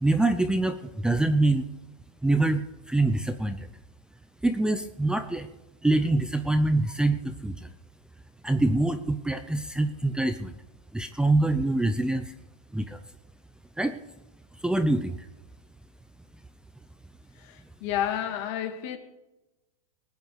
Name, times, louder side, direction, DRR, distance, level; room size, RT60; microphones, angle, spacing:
voice 1, 0.0-1.6 2.2-3.7 4.4-5.5 5.8-7.7 8.4-10.5 10.9-12.3 12.7-13.0 13.8-14.0 14.6-15.2, right 2 dB, 5° right, 0.7 m, -25 dB
voice 2, 17.4-19.0, left 10 dB, 55° left, 2.2 m, -31 dB
20.5 x 9.3 x 4.8 m
supercardioid pair, 130°, 19 cm